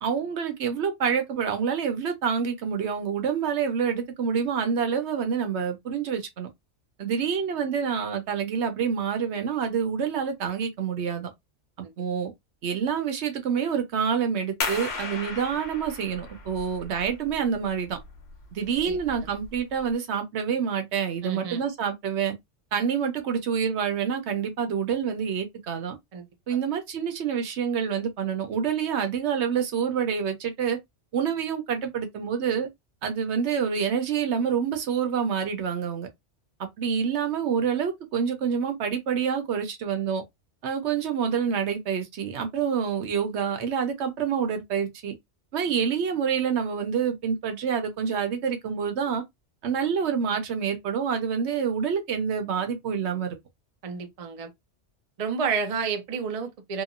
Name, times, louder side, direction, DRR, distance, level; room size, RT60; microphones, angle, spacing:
voice 1, 0.0-6.5 7.0-11.3 11.8-12.3 12.6-18.0 18.5-22.3 22.7-26.0 26.5-30.8 31.1-32.7 33.0-36.1 36.8-40.2 40.6-45.1 45.5-49.2 49.6-53.4, right 7 dB, 70° right, 1.0 m, -27 dB
sound 1, 14.6-19.9, left 3 dB, 60° left, 1.0 m, -37 dB
voice 2, 21.2-21.6 26.1-26.3 53.8-54.5 55.2-56.8, right 6 dB, 50° right, 0.4 m, -30 dB
2.9 x 2.3 x 2.4 m
omnidirectional pair, 1.2 m